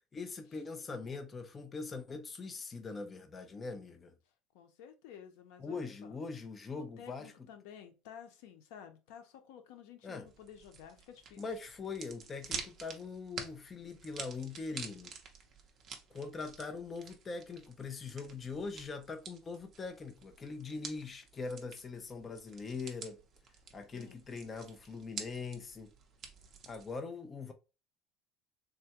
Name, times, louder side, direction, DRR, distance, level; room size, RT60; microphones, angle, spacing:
voice 1, 0.1-4.1 5.6-7.3 10.0-10.3 11.3-15.1 16.1-23.2 23.7-25.9 26.7-27.5, left 4 dB, 20° left, 0.3 m, -42 dB
voice 2, 4.5-6.2 7.0-11.4 23.9-24.2, left 8 dB, 85° left, 0.7 m, -53 dB
sound 1, 10.3-27.0, right 6 dB, 30° right, 0.6 m, -49 dB
3.5 x 2.2 x 2.8 m
cardioid pair, 170°, 0 cm